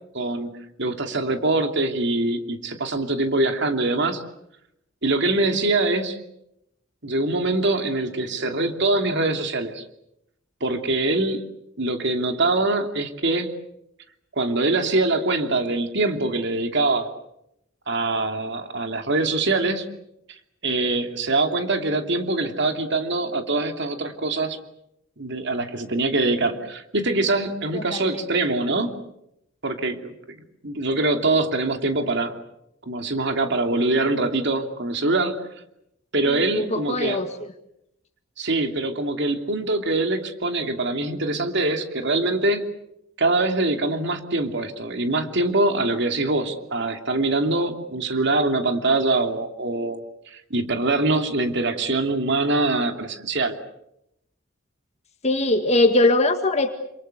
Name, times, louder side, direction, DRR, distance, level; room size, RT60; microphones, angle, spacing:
voice 1, 0.1-0.5 0.8-4.2 5.0-6.2 7.0-9.8 10.6-11.4 11.8-13.5 14.4-17.1 17.9-19.9 20.3-24.6 25.2-29.0 29.6-32.4 32.8-35.4 36.1-37.2 38.4-42.7 43.2-50.0 50.3-53.5, right 2 dB, 60° right, 6 dB, 2.9 m, -23 dB
voice 2, 27.7-28.5 36.2-37.3 55.2-56.7, left 2 dB, 35° left, 6 dB, 1.9 m, -21 dB
29.0 x 27.5 x 6.8 m, 0.81 s
head